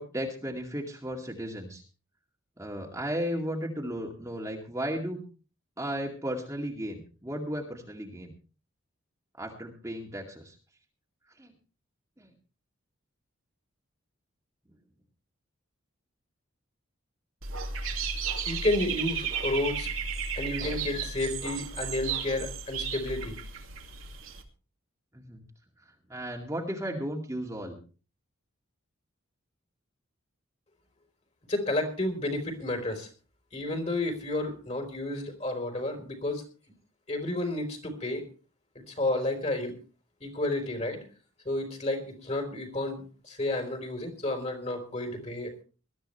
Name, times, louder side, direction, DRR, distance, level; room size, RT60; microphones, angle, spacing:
voice 1, 0.0-1.8 2.6-5.2 5.8-8.3 9.4-10.5 11.4-11.5 12.2-12.3 25.1-25.4 26.1-27.8, equal, 15° right, 0 dB, 2.3 m, -35 dB
Dog / Bird, 17.4-24.4, right 5 dB, 80° right, 2.7 m, -34 dB
voice 2, 18.4-19.9 20.4-23.4 31.5-33.1 33.5-36.4 37.1-38.2 38.9-39.7 40.2-41.0 41.4-45.6, left 1 dB, 35° left, 5 dB, 4.3 m, -31 dB
21.0 x 13.0 x 3.3 m, 0.37 s
head